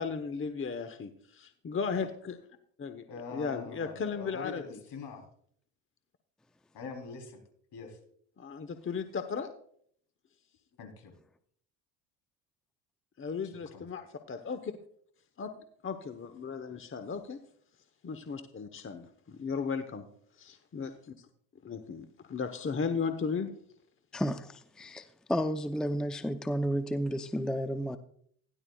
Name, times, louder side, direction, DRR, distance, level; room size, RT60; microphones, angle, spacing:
voice 1, 0.0-2.4 2.8-3.0 3.3-4.8 8.4-9.5 13.2-14.7 15.4-15.5 15.8-17.4 18.0-20.0 20.4-21.3 21.6-23.5, left 5 dB, 30° left, 1.0 m, -36 dB
voice 2, 3.1-5.3 6.7-7.4 7.7-8.0 10.8-11.1 13.4-13.8, left 5 dB, 65° left, 3.6 m, -43 dB
voice 3, 24.1-28.0, equal, ahead, 0.6 m, -32 dB
16.5 x 11.0 x 2.3 m
supercardioid pair, 75°, 44 cm